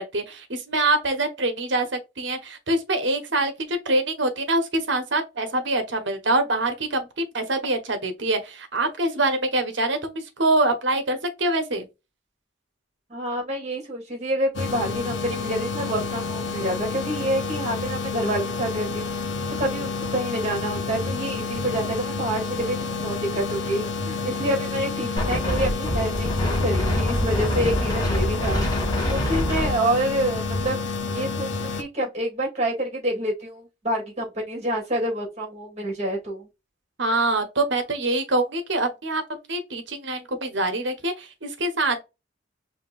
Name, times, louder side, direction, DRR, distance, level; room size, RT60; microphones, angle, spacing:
voice 1, 0.0-11.9 37.0-39.2 39.5-42.0, right 2 dB, 70° right, 1.3 m, -25 dB
voice 2, 13.1-19.1 19.6-28.6 29.1-30.8 31.1-36.5, right 1 dB, 35° right, 2.9 m, -27 dB
sound 1, 14.5-31.8, left 4 dB, 75° left, 0.8 m, -29 dB
Wind, 25.2-30.7, equal, 20° left, 2.0 m, -26 dB
5.1 x 3.7 x 2.5 m
head